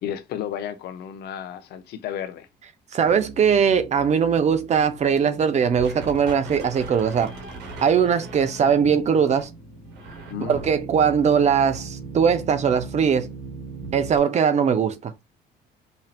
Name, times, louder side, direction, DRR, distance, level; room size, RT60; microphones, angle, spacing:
voice 1, 0.0-2.5 10.3-10.6, left 10 dB, 75° left, 1.0 m, -32 dB
voice 2, 2.9-7.3 7.8-9.5 10.4-13.3 13.9-15.1, right 7 dB, 40° right, 0.8 m, -20 dB
sound 1, 3.0-14.2, right 3 dB, 85° right, 1.5 m, -38 dB
5.5 x 2.8 x 2.5 m
cardioid pair, 110°, 17 cm